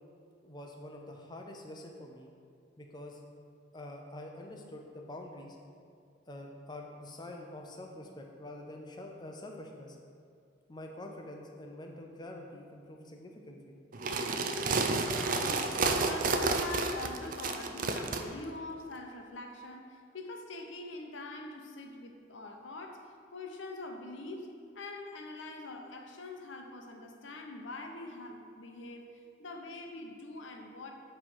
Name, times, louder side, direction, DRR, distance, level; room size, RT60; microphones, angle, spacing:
voice 1, 0.4-2.3 2.8-3.2 3.7-5.6 6.3-10.0 10.7-13.7, left 1 dB, 25° left, 1 dB, 0.6 m, -46 dB
sound 1, 13.9-18.2, right 3 dB, 45° right, 0.4 m, -30 dB
voice 2, 15.3-29.1 29.4-30.9, left 2 dB, 85° left, 3 dB, 0.7 m, -44 dB
7.5 x 3.3 x 5.5 m, 2.3 s
head